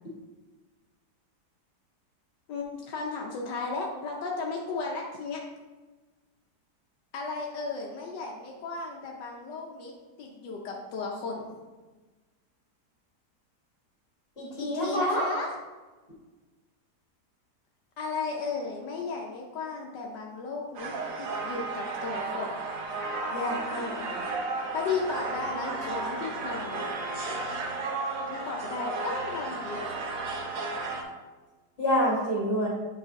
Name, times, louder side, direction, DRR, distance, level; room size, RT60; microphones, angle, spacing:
voice 1, 2.5-5.4 7.1-9.9 10.2-11.6 14.6-15.5 18.0-20.9 21.2-22.6 23.3-24.3 24.7-26.8 28.2-30.0, left 4 dB, 80° left, -1 dB, 1.4 m, -34 dB
voice 2, 14.4-15.3 31.8-32.7, equal, 35° left, -6 dB, 2.4 m, -26 dB
sound 1, 20.7-31.0, right 3 dB, 60° right, 1.1 m, -33 dB
8.6 x 4.8 x 2.6 m, 1.2 s
omnidirectional pair, 1.9 m